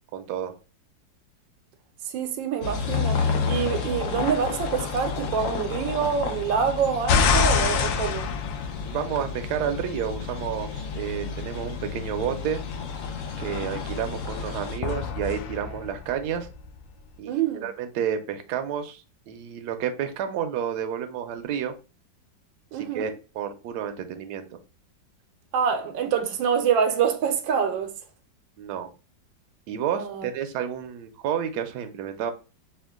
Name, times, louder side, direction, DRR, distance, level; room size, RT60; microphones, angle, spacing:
voice 1, 0.1-0.6 8.8-12.6 13.4-16.5 17.2-17.3 17.6-21.8 22.7-24.5 28.6-28.9 29.7-32.3, right 8 dB, 70° right, 1.1 m, -30 dB
voice 2, 2.1-8.3 17.2-17.7 22.7-23.1 25.5-27.9 30.0-30.3, right 7 dB, 90° right, 1.4 m, -26 dB
sound 1, 2.6-14.8, left 5 dB, 65° left, 0.7 m, -31 dB
sound 2, 7.1-9.5 14.8-16.9, left 6 dB, 85° left, 1.3 m, -25 dB
4.4 x 2.4 x 3.5 m
omnidirectional pair, 2.0 m